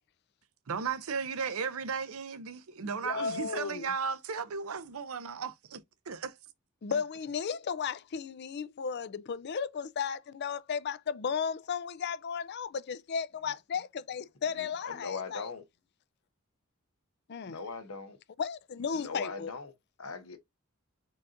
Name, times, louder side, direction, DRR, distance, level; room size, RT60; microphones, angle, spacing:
voice 1, 0.7-5.8 6.1-6.4 6.9-7.0, right 5 dB, 85° right, 0.6 m, -35 dB
voice 2, 2.8-3.8 6.8-15.5 17.3-17.6 18.4-19.5, left 6 dB, 50° left, 0.4 m, -35 dB
voice 3, 14.6-15.6 17.4-18.2 18.9-19.7 20.0-20.4, left 4 dB, 90° left, 1.1 m, -40 dB
4.5 x 2.5 x 3.8 m
head